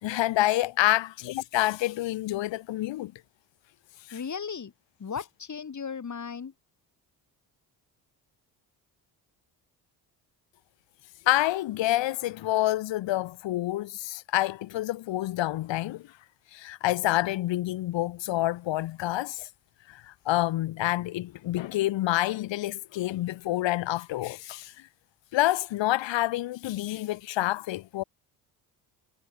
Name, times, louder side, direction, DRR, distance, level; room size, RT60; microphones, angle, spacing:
voice 1, 0.0-3.1 4.0-4.2 11.3-16.0 16.5-19.5 19.9-24.8 25.3-28.0, left 15 dB, 80° left, 4.1 m, -28 dB
voice 2, 4.1-4.7 5.0-6.5, left 6 dB, 40° left, 5.2 m, -36 dB
supercardioid pair, 75°, 44 cm